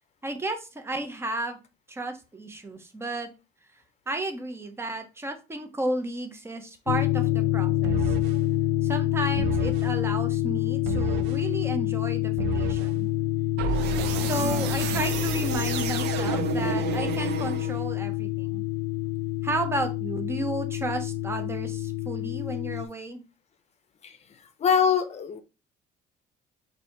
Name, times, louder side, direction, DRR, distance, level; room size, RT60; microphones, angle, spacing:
voice 1, 0.2-1.6 1.9-3.3 4.1-8.2 8.8-13.1 14.2-18.6 19.4-23.2, right 2 dB, 15° right, 6 dB, 1.0 m, -33 dB
sound 1, 6.9-22.9, left 16 dB, 80° left, 0.5 m, -27 dB
sound 2, 7.8-8.4 9.4-9.9 10.9-11.4 12.4-12.9 13.6-18.0, right 8 dB, 85° right, 0.6 m, -31 dB
voice 2, 24.6-25.4, left 7 dB, 40° left, 9 dB, 0.7 m, -23 dB
4.0 x 2.8 x 4.5 m, 0.28 s
cardioid pair, 110°, 17 cm